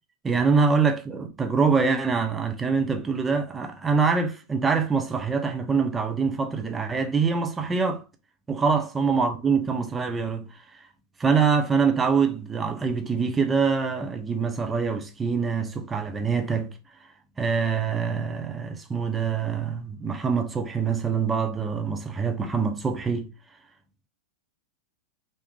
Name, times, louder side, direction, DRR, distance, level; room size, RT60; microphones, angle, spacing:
voice 1, 0.2-8.0 8.5-10.6 11.2-16.7 17.4-23.3, right 5 dB, 15° right, 0.6 m, -24 dB
3.4 x 2.7 x 3.5 m
figure-of-eight pair, 90°, 0 cm